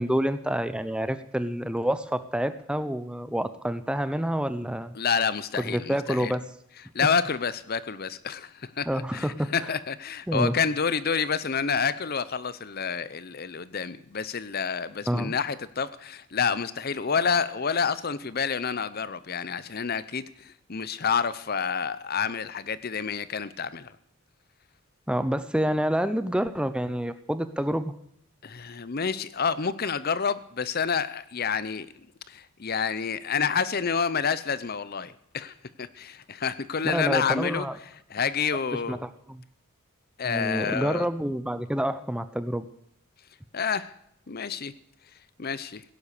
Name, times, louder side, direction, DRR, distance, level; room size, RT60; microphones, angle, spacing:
voice 1, 0.0-5.0 5.6-6.4 8.9-9.5 10.3-10.5 15.1-15.3 25.1-27.9 36.8-37.8 38.9-39.4 40.2-42.6, equal, 5° right, 12 dB, 0.6 m, -28 dB
voice 2, 5.0-6.3 6.9-23.9 28.4-31.9 32.3-37.7 38.1-39.0 40.2-41.1 43.5-43.9 44.3-44.7 45.4-45.8, left 6 dB, 45° left, 16 dB, 0.7 m, -28 dB
17.0 x 11.0 x 6.7 m, 0.72 s
head